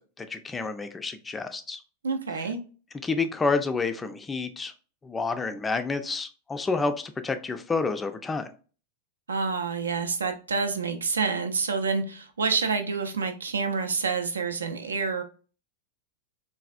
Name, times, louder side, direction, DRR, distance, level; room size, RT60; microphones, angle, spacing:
voice 1, 0.2-1.8 3.0-4.7 5.0-8.5, left 4 dB, 15° left, 0.4 m, -29 dB
voice 2, 2.0-2.6 9.3-15.2, right 4 dB, 70° right, 0.4 m, -28 dB
3.2 x 2.3 x 2.4 m
figure-of-eight pair, 90°, 0 cm